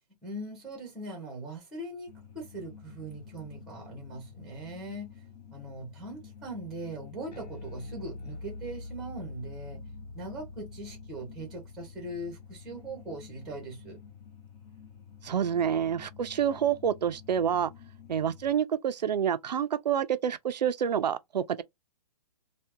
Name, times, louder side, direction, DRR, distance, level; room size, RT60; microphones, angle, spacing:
voice 1, 0.2-5.1 5.5-9.9 10.1-14.0, right 1 dB, 5° right, 1.1 m, -40 dB
sound 1, 2.1-18.5, left 7 dB, 25° left, 0.9 m, -50 dB
Bass guitar, 7.3-13.8, left 2 dB, 90° left, 0.9 m, -45 dB
voice 2, 15.2-17.7 18.1-21.4, right 8 dB, 85° right, 0.6 m, -28 dB
2.7 x 2.4 x 3.6 m
hypercardioid pair, 165°, 21 cm